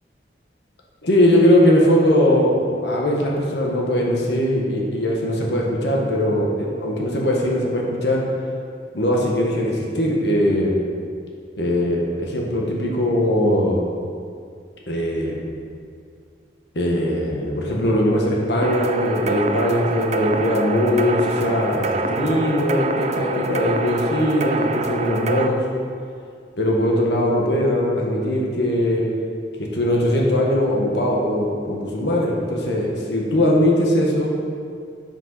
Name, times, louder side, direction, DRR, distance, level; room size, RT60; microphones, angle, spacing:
voice 1, 1.0-8.2 8.9-10.8 11.6-13.8 14.9-15.4 16.7-25.6 26.6-29.0 29.6-34.3, left 1 dB, 75° left, -2 dB, 1.4 m, -20 dB
sound 1, 18.6-25.5, right 3 dB, 35° right, 0.4 m, -25 dB
8.9 x 7.6 x 4.1 m, 2.2 s
head